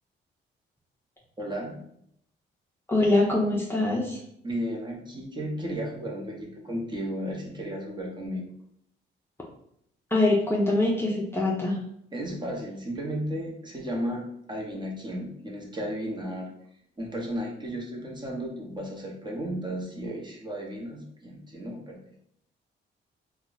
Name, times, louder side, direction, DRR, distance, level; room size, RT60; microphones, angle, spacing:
voice 1, 1.4-1.8 4.4-8.4 12.1-16.5 17.0-22.0, equal, 20° right, -1 dB, 1.0 m, -34 dB
voice 2, 2.9-4.2 10.1-11.8, left 2 dB, 10° left, -4 dB, 0.6 m, -23 dB
2.9 x 2.3 x 3.8 m, 0.71 s
cardioid pair, 90°, 20 cm